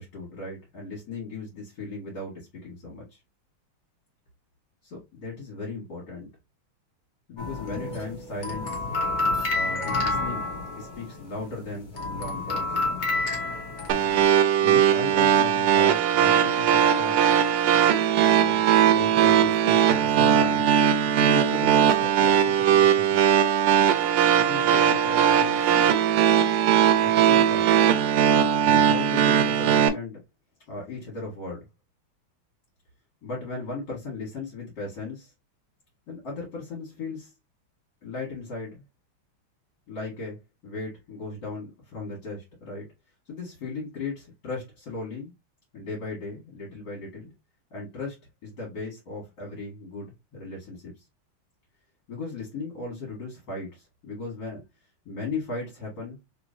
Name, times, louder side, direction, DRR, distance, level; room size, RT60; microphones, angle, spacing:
voice 1, 0.0-3.2 4.8-6.3 7.3-8.8 9.5-10.5 10.8-12.8 14.6-17.3 18.2-20.7 21.1-23.2 24.3-25.9 27.0-27.9 28.6-30.2 30.7-31.6 33.2-35.3 36.1-37.3 38.0-38.8 39.9-42.8 43.3-45.3 45.7-47.3 47.7-50.9 52.1-54.6 55.1-56.2, left 3 dB, 60° left, 2.0 m, -37 dB
sound 1, 7.4-11.4 11.7-14.2, left 2 dB, 35° left, 0.7 m, -29 dB
sound 2, 13.9-29.9, right 9 dB, 85° right, 1.4 m, -20 dB
3.7 x 3.1 x 2.5 m
omnidirectional pair, 2.3 m